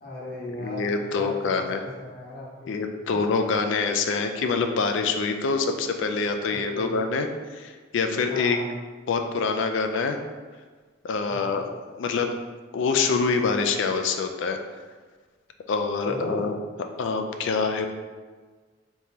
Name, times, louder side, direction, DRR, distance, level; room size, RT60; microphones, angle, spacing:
voice 1, 0.0-2.7 6.5-6.9 8.3-8.7 11.3-11.5 16.0-16.5, left 1 dB, 50° left, -5 dB, 0.9 m, -36 dB
voice 2, 0.6-1.8 2.7-7.3 7.5-8.6 9.1-10.2 11.0-11.7 12.0-12.3 12.7-14.6 15.7-16.5 17.0-17.9, left 4 dB, 70° left, 5 dB, 0.4 m, -25 dB
3.6 x 3.0 x 2.8 m, 1.4 s
head